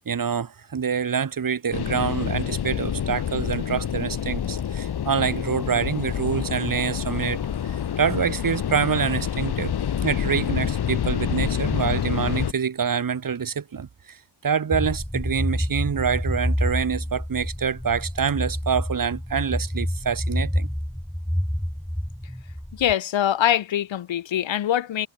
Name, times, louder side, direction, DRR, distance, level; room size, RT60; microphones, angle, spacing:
voice 1, 0.0-7.4 8.0-9.7 10.0-14.2 14.4-20.7, right 6 dB, 45° right, 3.7 m, -26 dB
sound 1, 1.7-12.5, left 9 dB, 60° left, 2.1 m, -27 dB
sound 2, 14.7-22.9, equal, ahead, 3.1 m, -28 dB
voice 2, 22.7-25.1, left 11 dB, 85° left, 3.5 m, -23 dB
wide cardioid pair, 120°, 44 cm